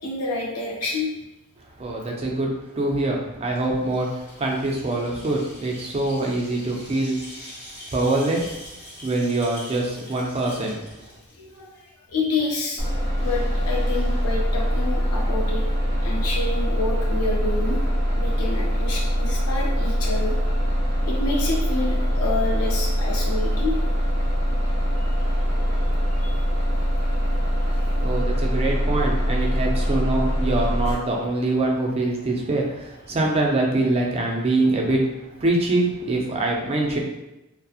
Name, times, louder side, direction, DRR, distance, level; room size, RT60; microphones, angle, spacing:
voice 1, 0.0-1.1 11.3-12.8 13.2-15.6 16.0-17.8 18.1-20.4 21.0-23.8 25.0-25.3 26.1-26.3, left 3 dB, 75° left, -2 dB, 0.5 m, -28 dB
voice 2, 1.8-2.5 2.8-4.1 4.4-7.2 7.9-8.5 9.0-10.8 28.0-35.0 35.4-37.0, right 2 dB, 25° right, -1 dB, 0.4 m, -24 dB
sound 1, 3.5-11.9, left 1 dB, 55° left, 1.1 m, -44 dB
Bus, 12.8-30.9, equal, 30° left, 0.9 m, -23 dB
2.7 x 2.0 x 2.3 m, 0.95 s
head